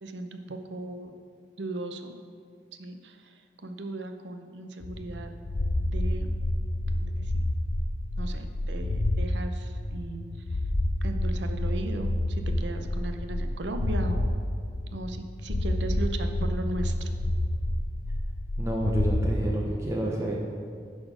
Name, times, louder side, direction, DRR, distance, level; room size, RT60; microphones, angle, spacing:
voice 1, 0.0-1.1 1.6-2.2 2.8-5.3 5.8-6.4 6.9-7.4 8.1-10.6 11.0-14.3 14.9-17.1, right 2 dB, 80° right, 6 dB, 0.6 m, -37 dB
sound 1, 4.8-9.3 9.6-14.3 14.7-15.2 15.5-19.3, left 1 dB, 55° left, 0.6 m, -29 dB
voice 2, 18.6-20.3, right 1 dB, 15° right, -2 dB, 0.6 m, -29 dB
11.0 x 4.3 x 4.9 m, 2.2 s
head